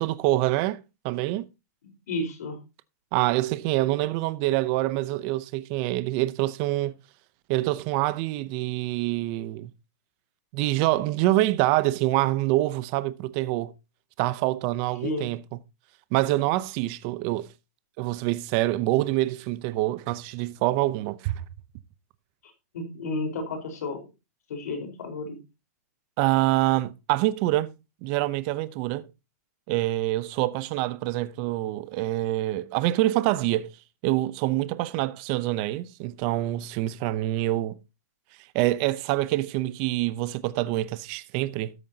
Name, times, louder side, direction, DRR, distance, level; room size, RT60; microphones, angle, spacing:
voice 1, 0.0-1.5 3.1-6.9 7.5-9.7 10.5-13.7 14.2-15.4 16.1-17.5 18.0-21.4 26.2-27.7 28.0-29.1 29.7-33.7 34.0-37.8 38.5-41.7, right 17 dB, 30° right, 0.7 m, -26 dB
voice 2, 2.1-2.6 15.0-15.3 22.7-24.0 24.5-25.4, left 2 dB, 70° left, 4.5 m, -31 dB
13.0 x 9.4 x 2.8 m
supercardioid pair, 165°, 9 cm